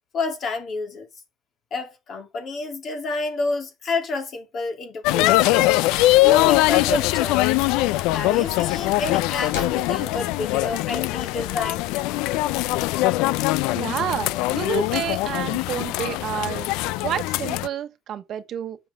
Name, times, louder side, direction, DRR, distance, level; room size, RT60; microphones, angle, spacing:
voice 1, 0.1-1.1 1.7-5.7 6.1-7.5 8.1-11.9, left 3 dB, 40° left, 3.0 m, -29 dB
sound 1, 5.0-17.7, left 18 dB, 70° left, 0.4 m, -22 dB
Wood, 7.3-13.0, left 6 dB, 85° left, 4.2 m, -40 dB
voice 2, 13.7-16.7 17.0-18.8, right 10 dB, 45° right, 1.3 m, -29 dB
10.5 x 6.7 x 3.6 m
cardioid pair, 130°, 0 cm